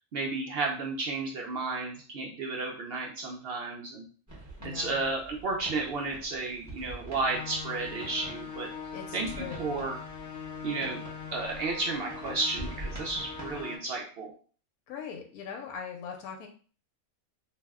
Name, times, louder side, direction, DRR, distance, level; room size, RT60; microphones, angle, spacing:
voice 1, 0.1-4.0 4.6-8.7 9.1-10.0 10.6-11.0 11.3-14.3, right 3 dB, 75° right, 0 dB, 0.5 m, -32 dB
sound 1, 4.3-13.6, right 1 dB, 20° right, 0.6 m, -46 dB
voice 2, 4.6-5.1 8.9-9.7 14.9-16.5, left 6 dB, 90° left, 3 dB, 1.1 m, -41 dB
sound 2, 7.2-13.8, left 6 dB, 65° left, 0.7 m, -41 dB
2.6 x 2.1 x 3.4 m, 0.40 s
omnidirectional pair, 1.5 m